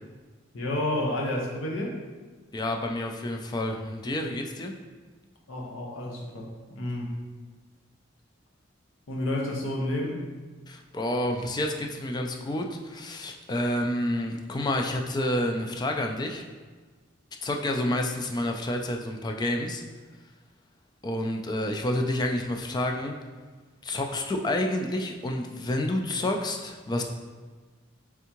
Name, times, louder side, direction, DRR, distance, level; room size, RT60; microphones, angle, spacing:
voice 1, 0.5-1.9 5.5-7.1 9.1-10.2, left 1 dB, 85° left, -1 dB, 0.8 m, -30 dB
voice 2, 2.5-4.7 10.7-16.4 17.4-19.8 21.0-23.2 23.8-27.0, left 1 dB, 20° left, 3 dB, 0.3 m, -29 dB
3.5 x 3.4 x 2.9 m, 1.4 s
head